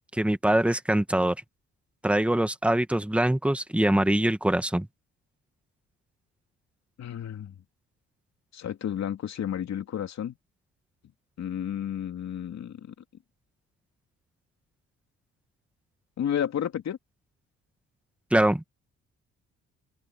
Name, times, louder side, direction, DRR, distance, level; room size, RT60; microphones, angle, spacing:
voice 1, 0.1-1.4 2.0-4.9 18.3-18.6, right 1 dB, 5° right, 1.7 m, -23 dB
voice 2, 7.0-7.5 8.5-10.4 11.4-12.9 16.2-17.0, left 9 dB, 60° left, 3.1 m, -31 dB
open air
cardioid pair, 90°, 30 cm